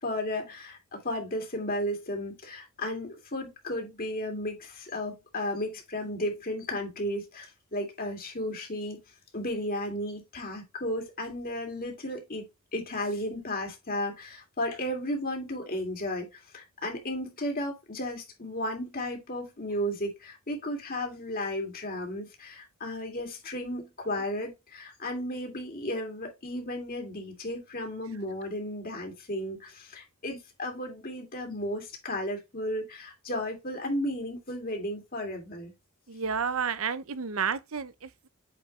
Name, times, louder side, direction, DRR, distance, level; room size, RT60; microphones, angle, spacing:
voice 1, 0.0-9.0 9.3-12.4 12.7-35.7, left 1 dB, 40° left, 2.8 m, -34 dB
voice 2, 36.1-38.3, right 6 dB, 65° right, 0.8 m, -31 dB
8.5 x 5.2 x 3.2 m
head